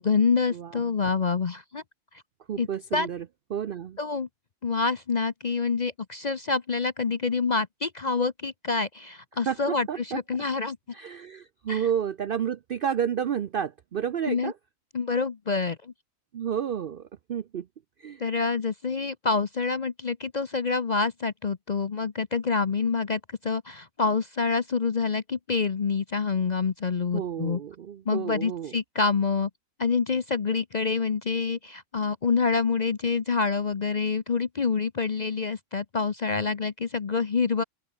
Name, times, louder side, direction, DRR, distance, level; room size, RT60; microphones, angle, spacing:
voice 1, 0.0-1.8 2.6-3.1 4.0-4.3 4.6-10.8 11.7-11.9 14.3-14.5 14.9-15.9 18.2-27.6 28.1-29.5 29.8-37.6, left 4 dB, 40° left, 0.6 m, -27 dB
voice 2, 0.5-0.8 2.5-3.3 3.5-4.0 9.5-10.2 10.9-14.5 16.3-17.7 18.0-18.2 27.1-28.8, right 8 dB, 65° right, 0.5 m, -31 dB
open air
omnidirectional pair, 1.6 m